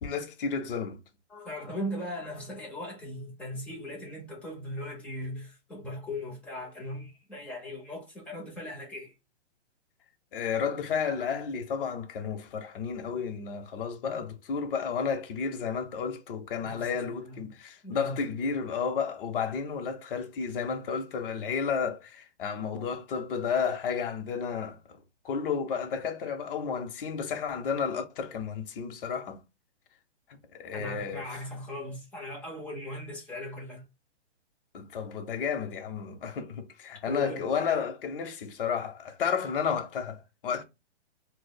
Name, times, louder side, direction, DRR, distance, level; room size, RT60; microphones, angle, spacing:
voice 1, 0.0-1.0 10.3-25.0 25.2-29.4 30.5-31.2 34.7-40.6, left 6 dB, 50° left, 0.9 m, -32 dB
voice 2, 1.3-9.1 16.6-17.5 17.8-18.2 30.7-33.8 37.1-37.4, left 1 dB, 5° left, 0.5 m, -38 dB
4.6 x 2.1 x 2.3 m
hypercardioid pair, 155°, 35 cm